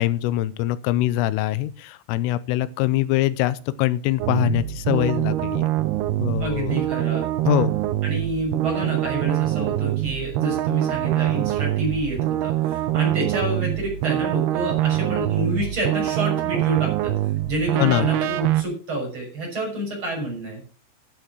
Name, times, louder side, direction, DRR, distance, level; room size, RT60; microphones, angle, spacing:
voice 1, 0.0-5.7 6.2-6.8 7.5-7.7 17.8-18.1, left 15 dB, 85° left, 16 dB, 3.3 m, -23 dB
sound 1, 4.2-18.6, right 14 dB, 85° right, 2.2 m, -24 dB
voice 2, 6.4-7.2 8.0-17.1 17.5-20.6, right 1 dB, 25° right, -1 dB, 6.5 m, -28 dB
12.0 x 8.4 x 6.3 m, 0.39 s
omnidirectional pair, 5.7 m